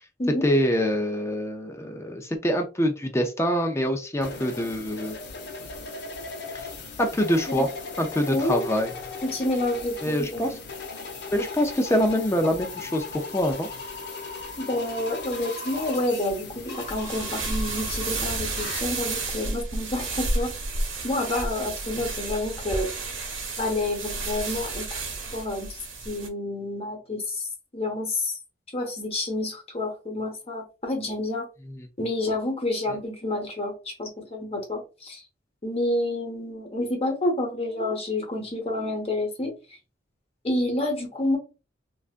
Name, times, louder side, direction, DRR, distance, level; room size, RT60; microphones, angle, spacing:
voice 1, 0.4-5.2 6.5-6.7 7.0-7.7 8.0-8.9 10.0-10.5 11.3-13.7 31.7-31.9, equal, 15° left, 4 dB, 0.4 m, -25 dB
sound 1, 4.2-18.8, left 3 dB, 65° left, 0.8 m, -38 dB
voice 2, 8.3-8.7 9.2-10.4 14.6-20.5 21.0-22.9 23.6-25.0 25.3-25.8 26.0-27.5 27.7-28.4 28.7-31.5 32.0-35.2 35.6-39.6 40.4-41.4, left 1 dB, 30° left, 2 dB, 0.9 m, -29 dB
sound 2, 16.8-26.3, right 3 dB, 80° right, 1.1 m, -31 dB
3.4 x 2.4 x 2.4 m, 0.31 s
head